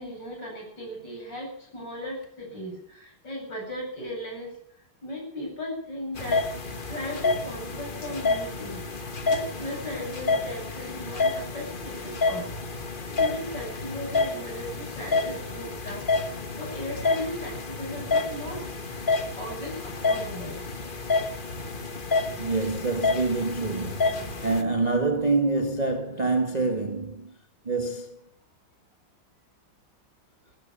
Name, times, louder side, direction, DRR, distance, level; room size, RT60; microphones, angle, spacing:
voice 1, 0.0-6.5 6.8-12.6 12.8-18.7 19.4-20.6 22.6-22.7, left 1 dB, 50° left, 8.7 m, -37 dB
sound 1, 6.1-24.6, left 3 dB, 30° left, 1.2 m, -29 dB
voice 2, 20.0-20.3 22.4-27.3 27.6-28.2, right 3 dB, 20° right, 1.5 m, -26 dB
14.5 x 14.5 x 7.0 m
omnidirectional pair, 2.4 m